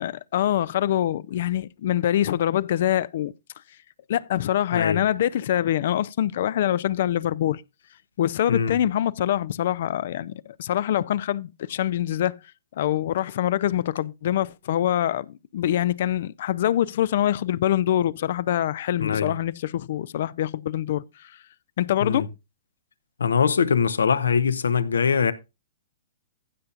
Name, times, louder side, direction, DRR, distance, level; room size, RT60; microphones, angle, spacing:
voice 1, 0.0-3.3 4.1-7.6 8.2-12.4 12.8-21.4 21.8-22.3, left 11 dB, 60° left, 0.5 m, -24 dB
voice 2, 4.7-5.0 8.5-8.8 19.0-19.3 22.0-22.3 23.2-25.3, left 6 dB, 80° left, 1.0 m, -22 dB
15.5 x 6.7 x 2.5 m
hypercardioid pair, 120°, 0 cm